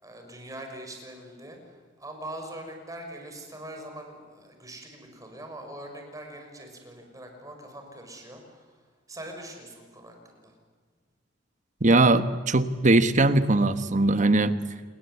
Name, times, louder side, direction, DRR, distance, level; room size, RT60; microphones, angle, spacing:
voice 1, 0.0-8.8 9.1-10.5, right 1 dB, 20° right, 3 dB, 6.1 m, -42 dB
voice 2, 11.8-14.6, right 2 dB, 40° right, 11 dB, 1.3 m, -20 dB
28.5 x 21.5 x 8.4 m, 1.5 s
head